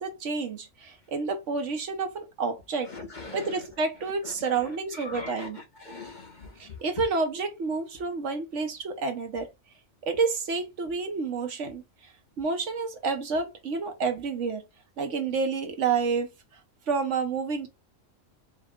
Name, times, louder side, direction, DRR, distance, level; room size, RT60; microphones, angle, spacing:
voice 1, 0.0-2.9 3.3-5.6 6.6-9.5 10.0-12.1 12.4-14.6 15.0-16.3 16.9-17.7, right 4 dB, 70° right, 1.2 m, -29 dB
voice 2, 2.9-3.5 4.2-4.3 5.0-6.8, left 3 dB, 40° left, 0.9 m, -41 dB
4.7 x 2.1 x 3.6 m
omnidirectional pair, 1.3 m